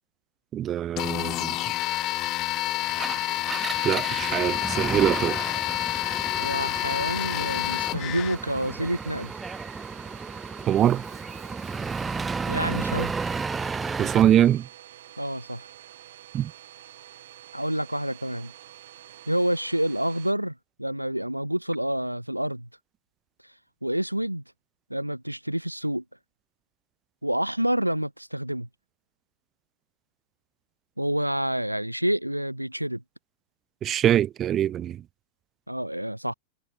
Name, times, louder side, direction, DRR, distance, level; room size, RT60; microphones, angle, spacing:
voice 1, 0.5-1.6 3.8-5.4 10.7-11.0 14.0-14.7 16.3-16.5 33.8-35.0, right 11 dB, 30° right, 1.5 m, -23 dB
sound 1, 1.0-8.3, left 16 dB, 35° left, 0.5 m, -28 dB
Domestic sounds home sounds, 2.6-20.3, right 12 dB, 60° right, 5.4 m, -49 dB
Engine, 2.9-14.4, right 4 dB, 15° right, 0.9 m, -33 dB
voice 2, 6.4-9.3 12.5-13.1 15.2-15.7 17.5-18.5 19.3-20.5 20.8-22.7 23.8-24.4 24.9-26.0 27.2-28.7 31.0-33.0 35.7-36.3, right 1 dB, 90° right, 2.9 m, -28 dB
figure-of-eight pair, 90°, 0 cm